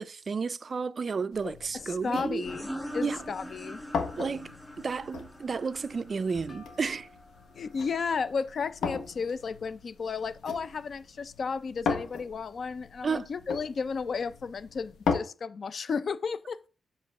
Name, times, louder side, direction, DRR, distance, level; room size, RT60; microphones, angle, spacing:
voice 1, 0.0-2.4 3.0-3.2 4.2-7.1 13.0-13.3, right 5 dB, 40° right, 0.4 m, -32 dB
sound 1, 1.3-15.2, left 5 dB, 85° left, 1.2 m, -38 dB
voice 2, 1.9-3.8 7.5-16.6, left 5 dB, 50° left, 0.5 m, -33 dB
sound 2, 2.4-7.7, equal, 5° left, 2.1 m, -42 dB
sound 3, 6.5-10.0, left 2 dB, 25° left, 2.3 m, -58 dB
7.4 x 3.6 x 6.0 m
cardioid pair, 120°, 0 cm